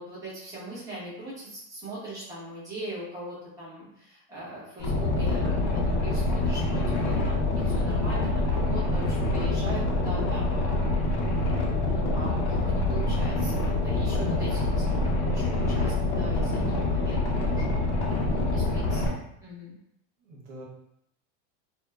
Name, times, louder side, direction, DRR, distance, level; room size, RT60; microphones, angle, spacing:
voice 1, 0.0-11.0 11.8-17.8 18.3-19.0 19.4-19.7, right 1 dB, 10° right, -8 dB, 0.7 m, -40 dB
Boat Water vehicle, 4.8-19.1, left 2 dB, 35° left, 0.5 m, -26 dB
voice 2, 17.6-17.9 20.2-20.6, right 2 dB, 90° right, -1 dB, 0.9 m, -46 dB
2.9 x 2.1 x 2.2 m, 0.75 s
supercardioid pair, 165°, 37 cm